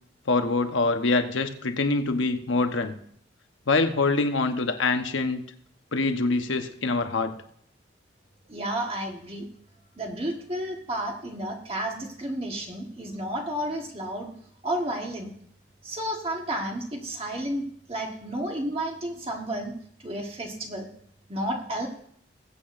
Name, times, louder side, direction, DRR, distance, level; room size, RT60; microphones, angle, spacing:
voice 1, 0.3-2.9 3.7-5.4 5.9-7.3, left 3 dB, 80° left, 7 dB, 1.1 m, -25 dB
voice 2, 8.5-9.4 10.0-14.3 14.6-15.3 15.8-19.7 20.0-20.9 21.3-21.9, right 1 dB, 30° right, 1 dB, 1.4 m, -31 dB
20.5 x 8.5 x 2.6 m, 0.65 s
head